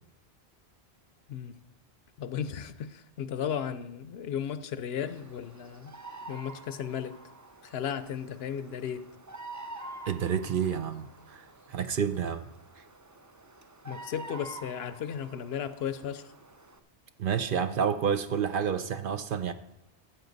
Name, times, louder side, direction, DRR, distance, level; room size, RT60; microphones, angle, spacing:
voice 1, 2.2-6.0 6.3-7.2 7.6-9.1 13.8-16.3, left 8 dB, 70° left, 0.8 m, -35 dB
Bird vocalization bird call bird song, 5.0-16.8, right 2 dB, 25° right, 0.4 m, -47 dB
voice 2, 10.1-12.5 12.8-12.9 17.2-19.5, right 7 dB, 60° right, 0.7 m, -29 dB
14.5 x 8.0 x 4.0 m
omnidirectional pair, 1.1 m